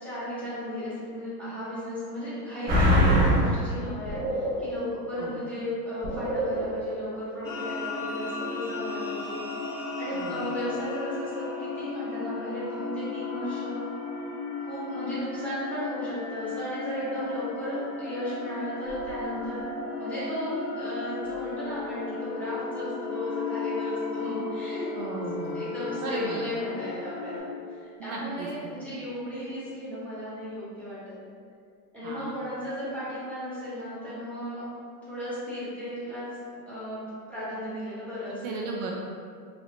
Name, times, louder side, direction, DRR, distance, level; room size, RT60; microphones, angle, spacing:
voice 1, 0.0-9.4 10.0-13.8 14.6-24.9 25.5-31.2 31.9-34.6 35.0-36.3 36.7-37.0 37.3-38.4, left 1 dB, 5° left, -12 dB, 1.1 m, -35 dB
sound 1, 2.7-3.6 4.1-4.9 5.3-5.4 6.0-6.9 7.3-7.4, equal, 20° right, 0.6 m, -24 dB
sound 2, 7.4-27.4, left 4 dB, 45° left, 0.8 m, -35 dB
sound 3, 18.9-19.6 21.3-28.9, left 2 dB, 80° right, 1.1 m, -40 dB
voice 2, 24.9-25.6 26.0-26.4 28.0-28.5 28.8-28.9 32.0-32.4 38.4-38.9, right 3 dB, 60° right, -1 dB, 0.6 m, -35 dB
3.1 x 2.8 x 2.6 m, 2.2 s
hypercardioid pair, 125°, 50 cm